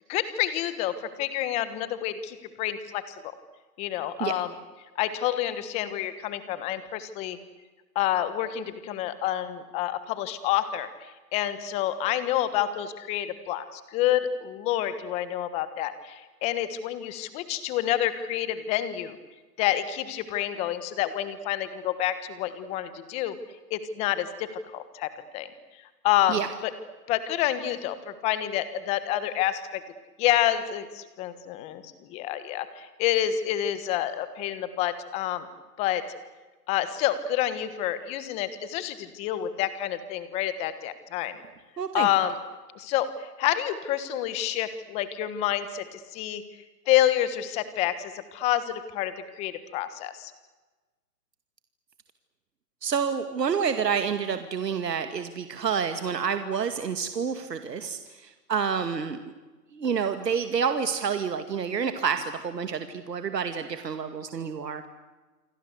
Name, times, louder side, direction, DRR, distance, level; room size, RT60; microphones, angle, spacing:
voice 1, 0.1-3.0 3.8-4.5 5.0-7.4 7.9-19.1 19.6-23.4 23.7-25.5 26.0-26.7 27.1-29.8 30.2-31.8 32.1-35.5 35.8-36.0 36.7-41.3 41.9-42.4 42.7-46.4 46.9-50.3, left 12 dB, 15° left, 13 dB, 1.3 m, -28 dB
voice 2, 41.8-42.1 52.8-59.2 59.7-64.9, right 6 dB, 80° right, 8 dB, 2.4 m, -28 dB
28.5 x 24.0 x 8.2 m, 1.2 s
hypercardioid pair, 160°, 48 cm